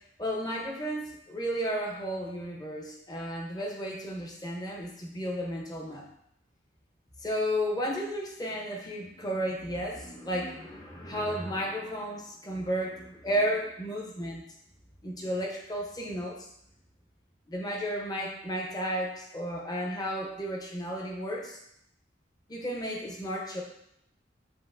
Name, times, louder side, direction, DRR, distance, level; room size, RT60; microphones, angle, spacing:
voice 1, 0.2-6.0 7.2-14.4 15.0-16.4 17.5-21.6 22.5-23.6, equal, 20° left, -1 dB, 0.8 m, -33 dB
7.6 x 2.6 x 2.5 m, 0.73 s
head